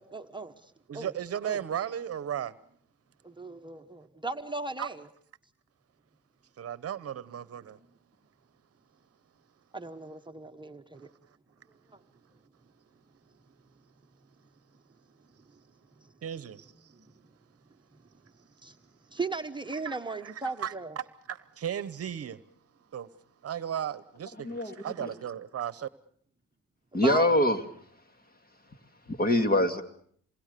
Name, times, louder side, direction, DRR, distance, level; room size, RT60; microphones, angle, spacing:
voice 1, 0.0-1.1 1.4-1.6 3.2-5.0 9.7-11.1 11.9-12.0 16.0-16.1 17.0-17.1 18.6-18.8 19.1-21.0 26.9-27.3, right 3 dB, 15° right, 1.2 m, -37 dB
voice 2, 0.9-2.5 4.8-4.9 6.6-7.8 16.2-16.9 19.7-19.9 20.2-22.4 22.9-23.1 23.4-25.9, right 9 dB, 50° right, 1.0 m, -36 dB
voice 3, 24.4-25.1 26.9-27.6 29.1-29.8, left 1 dB, 30° left, 2.3 m, -24 dB
27.5 x 20.5 x 6.8 m
cardioid pair, 90°, 30 cm